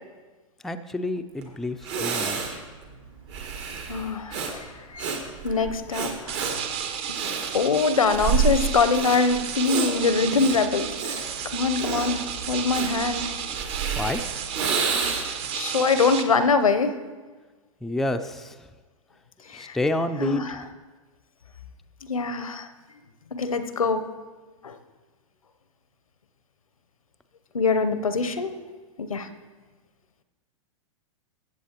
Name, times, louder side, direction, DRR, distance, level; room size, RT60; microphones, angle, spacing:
voice 1, 0.6-2.6 14.0-14.2 17.8-18.5 19.5-20.4, left 1 dB, ahead, 7 dB, 0.4 m, -29 dB
Breathing, 1.4-1.5 1.8-15.5, right 6 dB, 55° right, 1.7 m, -30 dB
voice 2, 3.9-5.1 5.4-6.5 7.2-11.3 11.5-13.3 15.5-17.0 19.5-19.8 20.2-20.6 22.1-22.7 23.3-24.0 24.6-24.8 27.5-28.6 29.0-29.3, left 4 dB, 85° left, 11 dB, 0.7 m, -24 dB
sound 1, 6.3-16.2, right 8 dB, 35° right, 0.9 m, -33 dB
14.5 x 7.8 x 2.9 m, 1.3 s
hypercardioid pair, 105°, 17 cm